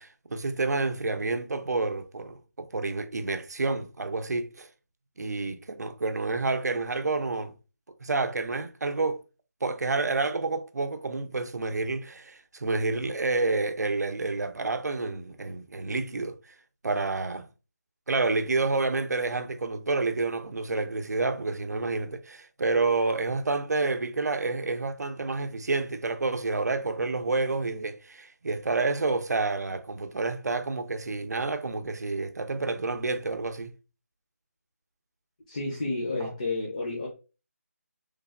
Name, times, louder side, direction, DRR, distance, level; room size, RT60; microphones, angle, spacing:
voice 1, 0.0-4.7 5.2-7.5 8.0-9.2 9.6-16.5 16.8-17.5 18.1-33.7 36.2-36.3, right 3 dB, 85° right, 0.5 m, -29 dB
voice 2, 35.5-37.1, left 2 dB, 30° left, 0.5 m, -31 dB
3.2 x 2.2 x 2.3 m
figure-of-eight pair, 175°, 9 cm